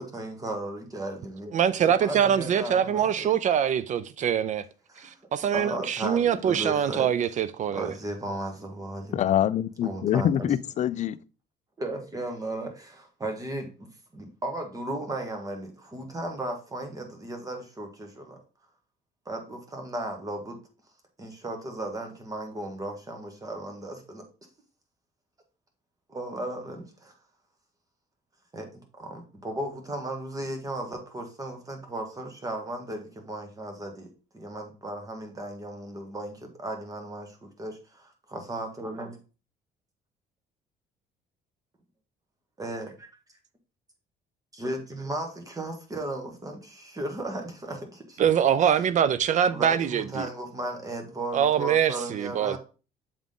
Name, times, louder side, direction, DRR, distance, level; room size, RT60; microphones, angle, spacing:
voice 1, 0.0-3.3 4.9-5.2 5.5-7.1 7.7-9.2 9.8-10.5 11.8-18.4 19.2-20.6 21.2-24.2 26.1-27.1 28.5-34.1 34.3-39.2 42.6-43.1 44.5-48.3 48.6-48.7 49.5-52.6, right 1 dB, 20° right, 1.5 m, -35 dB
voice 2, 1.5-4.6 5.0-7.9 48.2-50.3 51.3-52.6, right 9 dB, 45° right, 0.4 m, -24 dB
voice 3, 9.1-11.2, left 10 dB, 45° left, 0.4 m, -25 dB
7.1 x 3.7 x 3.6 m
cardioid pair, 110°, 17 cm